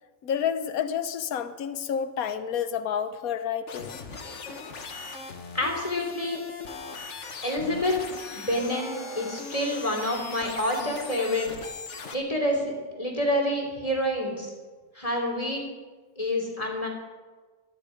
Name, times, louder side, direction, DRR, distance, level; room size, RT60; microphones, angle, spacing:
voice 1, 0.2-4.0, left 8 dB, 85° left, 10 dB, 1.3 m, -29 dB
sound 1, 3.7-12.1, left 4 dB, 60° left, 1.6 m, -39 dB
voice 2, 5.5-6.4 7.4-11.5 12.1-14.5 14.9-15.6 16.2-16.9, left 1 dB, 25° left, 0 dB, 3.2 m, -28 dB
23.5 x 10.5 x 5.1 m, 1.3 s
omnidirectional pair, 1.5 m